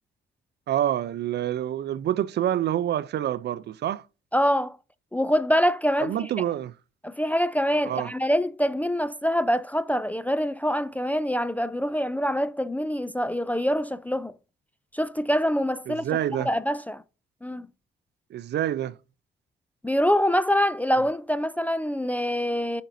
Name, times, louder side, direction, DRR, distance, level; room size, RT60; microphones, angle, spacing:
voice 1, 0.7-4.0 6.0-6.7 7.9-8.1 15.9-16.5 18.3-19.0, right 11 dB, 60° right, 0.5 m, -27 dB
voice 2, 4.3-4.8 5.1-6.3 7.0-14.3 14.9-16.1 16.4-17.0 17.4-17.7 19.8-22.8, equal, 10° left, 0.3 m, -25 dB
8.9 x 5.2 x 2.6 m
cardioid pair, 90°, 20 cm